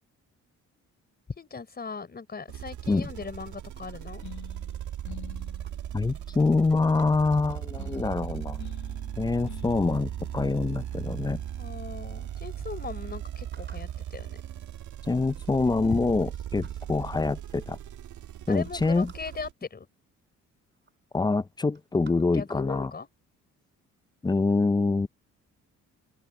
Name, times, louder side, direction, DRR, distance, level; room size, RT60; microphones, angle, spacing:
voice 1, 1.4-4.3 11.6-14.4 15.9-16.0 18.5-19.9 22.3-23.1, left 5 dB, 30° left, 4.8 m, -38 dB
sound 1, 2.5-19.5, right 11 dB, 75° right, 1.8 m, -38 dB
sound 2, 4.2-11.7, left 12 dB, 70° left, 2.0 m, -50 dB
sound 3, 5.0-6.0 6.9-8.4 10.0-10.5 11.1-11.2 11.4-12.0 12.5-12.6 12.8-12.9 13.5-14.0 15.0-15.1 15.5-16.3 16.6-17.0 17.9-18.0 18.4-19.4 20.3-20.4 20.7-21.0 21.3-22.6 23.1-23.3, right 5 dB, 35° right, 3.9 m, -56 dB
voice 2, 5.9-8.6 9.2-11.4 15.1-17.8 18.5-19.1 21.1-22.9 24.2-25.1, left 3 dB, 15° left, 0.5 m, -25 dB
open air
cardioid pair, 90°, 30 cm